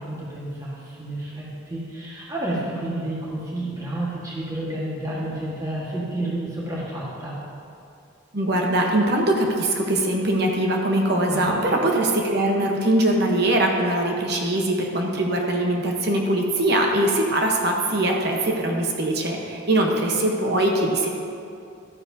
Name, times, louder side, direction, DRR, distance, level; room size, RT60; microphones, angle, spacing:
voice 1, 0.0-7.3 11.3-11.6, right 1 dB, 15° right, -6 dB, 1.4 m, -30 dB
voice 2, 8.3-21.1, right 1 dB, 50° right, 1 dB, 1.0 m, -22 dB
12.5 x 9.6 x 2.7 m, 2.5 s
head